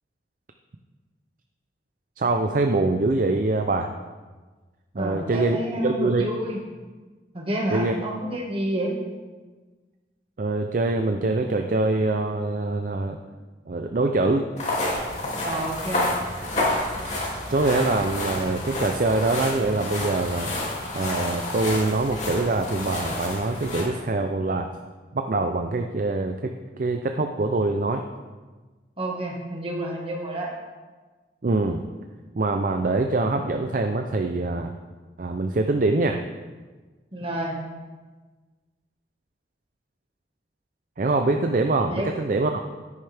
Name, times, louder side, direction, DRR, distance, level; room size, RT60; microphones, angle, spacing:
voice 1, 2.2-3.9 5.0-5.6 5.8-6.3 7.7-7.9 10.4-13.2 13.7-14.5 17.0-20.6 20.9-24.7 25.1-26.5 26.8-28.0 31.4-31.8 32.4-34.7 35.2-36.2 41.0-42.6, right 2 dB, 45° right, 5 dB, 0.5 m, -24 dB
voice 2, 4.9-6.6 7.3-9.0 15.4-16.1 29.0-30.5 37.1-37.6 41.9-42.1, right 1 dB, 30° right, -1 dB, 1.7 m, -29 dB
sound 1, 14.6-23.8, left 1 dB, 40° left, 2.6 m, -29 dB
10.0 x 9.7 x 3.4 m, 1.3 s
head